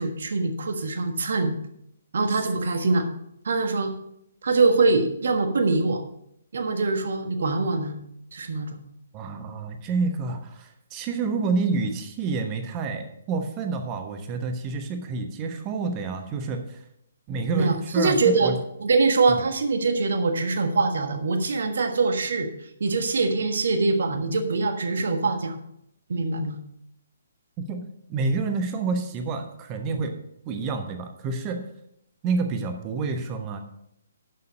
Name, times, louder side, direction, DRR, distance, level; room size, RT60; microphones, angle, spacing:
voice 1, 0.0-1.5 2.1-3.1 3.4-3.9 4.4-6.0 6.5-8.0 8.3-8.7 17.5-18.5 18.8-22.5 22.8-25.6 26.1-26.6, right 3 dB, 55° right, 7 dB, 1.4 m, -23 dB
voice 2, 9.1-16.8 17.3-18.6 19.3-19.4 27.6-31.7 32.2-33.6, right 4 dB, 25° right, 6 dB, 1.1 m, -28 dB
11.0 x 6.9 x 5.1 m, 0.75 s
figure-of-eight pair, 130°, 0 cm